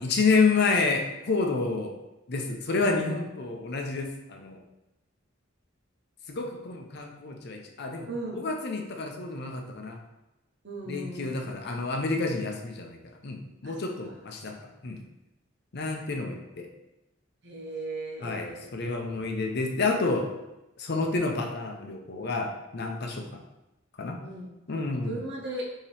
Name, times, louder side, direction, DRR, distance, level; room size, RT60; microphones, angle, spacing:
voice 1, 0.0-1.9 2.3-4.6 6.3-8.1 8.3-10.0 10.9-14.6 14.8-15.0 15.7-16.7 18.2-20.3 20.8-23.3 24.0-24.2 24.7-25.1, left 3 dB, 55° left, 3 dB, 0.6 m, -29 dB
voice 2, 8.1-8.4 10.6-11.5 13.6-13.7 14.0-14.1 14.7-14.8 17.4-18.7 24.2-24.5 25.0-25.6, right 2 dB, 60° right, -2 dB, 1.0 m, -37 dB
5.1 x 2.9 x 3.3 m, 0.94 s
head